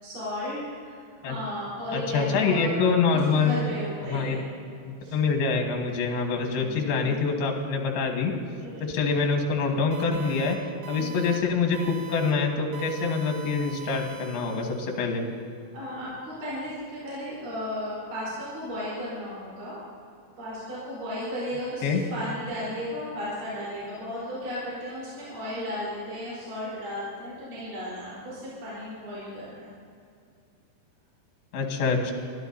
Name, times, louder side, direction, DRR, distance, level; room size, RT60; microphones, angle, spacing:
voice 1, 0.0-2.8 3.1-4.4 5.0-5.2 6.4-7.2 8.6-8.8 11.0-11.2 15.7-19.8 20.4-29.7, left 1 dB, 55° right, -9 dB, 5.7 m, -35 dB
voice 2, 1.9-3.6 4.1-4.4 5.1-8.3 8.8-15.2 21.8-22.0 31.5-32.1, left 4 dB, 70° left, 2 dB, 3.2 m, -25 dB
sound 1, 9.9-10.5 10.8-11.4 11.7-12.3 12.7-15.1, right 8 dB, 85° right, 3.8 m, -43 dB
22.5 x 14.0 x 2.7 m, 2.4 s
omnidirectional pair, 4.8 m